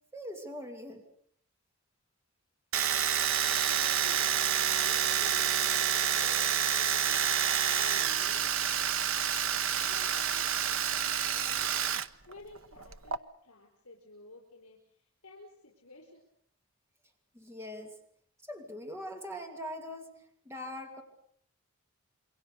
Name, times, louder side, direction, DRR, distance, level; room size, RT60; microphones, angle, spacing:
voice 1, 0.1-1.0 17.3-18.0 18.4-20.1 20.4-21.0, equal, 10° right, 3 dB, 2.7 m, -41 dB
Domestic sounds home sounds, 2.7-12.1 12.3-13.2, right 9 dB, 60° right, 0.9 m, -28 dB
voice 2, 3.4-4.3 4.8-7.3 7.7-8.5 9.5-11.7 12.3-16.2, left 2 dB, 75° left, -1 dB, 5.3 m, -52 dB
27.5 x 23.5 x 6.8 m, 0.67 s
head